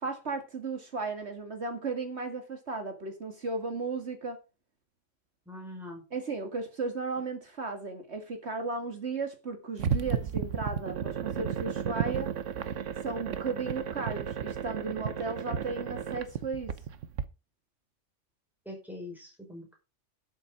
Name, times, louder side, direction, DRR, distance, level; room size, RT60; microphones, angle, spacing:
voice 1, 0.0-4.4 6.1-12.3 13.0-16.7, right 3 dB, 60° right, 2.2 m, -35 dB
voice 2, 5.5-6.0 18.7-19.7, left 1 dB, ahead, 5.7 m, -43 dB
sound 1, 9.8-17.2, right 8 dB, 85° right, 1.3 m, -33 dB
11.5 x 8.0 x 5.4 m
omnidirectional pair, 1.2 m